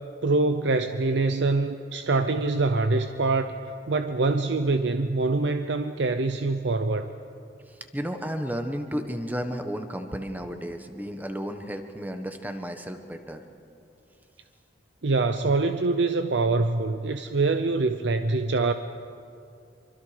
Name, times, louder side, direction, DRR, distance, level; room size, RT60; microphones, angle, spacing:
voice 1, 0.2-3.5 3.9-7.1 15.0-18.7, right 3 dB, 65° right, 8 dB, 0.7 m, -24 dB
voice 2, 7.9-13.4, equal, 10° right, 6 dB, 1.2 m, -33 dB
25.5 x 24.0 x 5.1 m, 2.5 s
head